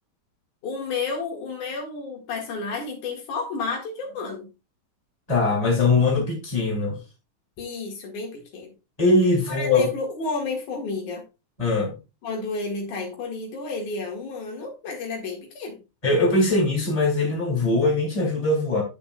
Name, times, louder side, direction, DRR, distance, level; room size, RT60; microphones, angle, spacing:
voice 1, 0.6-4.5 7.6-8.7 9.5-11.2 12.2-15.8, left 3 dB, 80° left, 3.4 m, -31 dB
voice 2, 5.3-7.0 9.0-9.9 11.6-11.9 16.0-18.8, left 2 dB, 10° left, 3.2 m, -21 dB
11.0 x 6.6 x 2.3 m
omnidirectional pair, 3.5 m